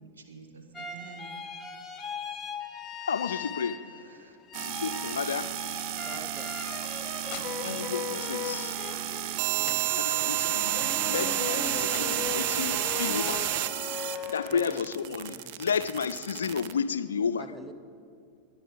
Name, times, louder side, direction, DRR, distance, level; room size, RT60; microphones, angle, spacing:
voice 1, 0.0-1.3 3.8-4.4 7.3-7.8 10.8-11.3 11.6-12.7 13.1-13.3, right 4 dB, 70° right, 5 dB, 1.5 m, -48 dB
sound 1, 0.7-4.2 4.5-15.1, left 6 dB, 15° left, 1.1 m, -39 dB
voice 2, 3.1-3.8 4.6-5.5 7.6-8.8 10.0-13.4 14.3-17.4, left 6 dB, 70° left, 13 dB, 0.4 m, -32 dB
sound 2, 4.5-16.7, right 13 dB, 45° right, 0.6 m, -31 dB
voice 3, 6.1-6.5 9.6-9.8 10.2-10.3 11.5-12.4 14.5-15.7 17.4-17.7, right 1 dB, 10° right, 8 dB, 1.0 m, -46 dB
sound 3, 6.7-8.1 9.2-9.3 9.6-10.4 11.6-11.7 11.9-12.7, left 10 dB, 45° left, 0.9 m, -47 dB
20.5 x 9.7 x 5.0 m, 2.4 s
figure-of-eight pair, 90°, 0 cm